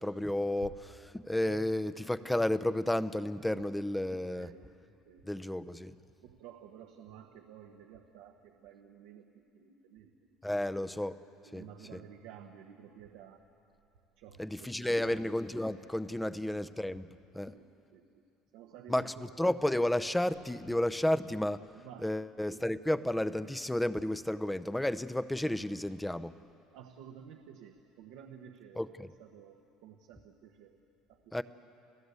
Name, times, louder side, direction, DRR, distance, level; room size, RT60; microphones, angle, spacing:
voice 1, 0.0-4.5 5.3-6.0 10.4-11.2 11.5-11.7 11.9-12.0 14.4-17.6 18.9-21.7 22.0-26.3 28.8-29.1 31.3-31.4, left 1 dB, 5° left, 13 dB, 0.7 m, -32 dB
voice 2, 4.3-4.7 5.1-5.8 6.2-10.1 11.4-13.4 14.2-15.3 16.2-16.6 17.5-17.6 17.9-18.3 18.5-19.3 21.7-22.2 26.7-30.8 31.1-31.4, right 8 dB, 80° right, 3 dB, 1.3 m, -53 dB
29.5 x 16.0 x 8.3 m, 2.7 s
supercardioid pair, 110°, 0 cm